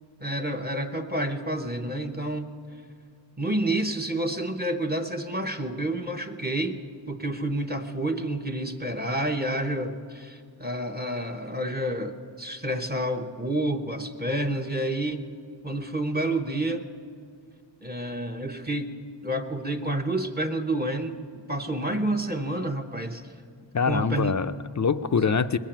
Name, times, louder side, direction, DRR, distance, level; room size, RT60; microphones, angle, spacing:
voice 1, 0.2-2.5 3.4-6.8 7.1-15.2 15.6-16.8 17.8-21.2 21.5-23.3 23.9-24.3, right 1 dB, 20° right, 6 dB, 0.9 m, -29 dB
voice 2, 23.7-25.6, left 5 dB, 40° left, 12 dB, 0.4 m, -24 dB
20.5 x 7.4 x 8.9 m, 2.2 s
wide cardioid pair, 70°, 44 cm